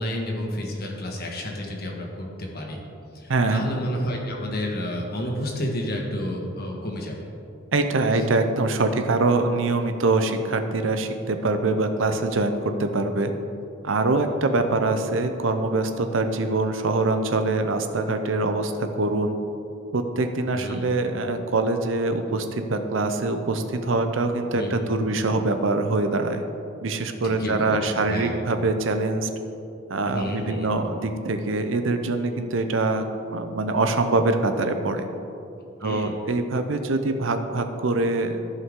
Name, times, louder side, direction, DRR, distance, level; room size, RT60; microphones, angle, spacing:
voice 1, 0.0-2.8 3.1-7.2 8.1-8.2 20.5-20.9 24.5-25.2 27.2-28.4 30.0-30.7 35.8-36.1, left 1 dB, 55° left, 0 dB, 1.5 m, -31 dB
voice 2, 3.3-3.7 7.7-13.3 13.8-19.3 19.9-26.4 26.8-29.3 29.9-35.0 35.8-38.5, right 2 dB, 80° right, 7 dB, 0.7 m, -24 dB
14.5 x 5.5 x 3.7 m, 2.7 s
head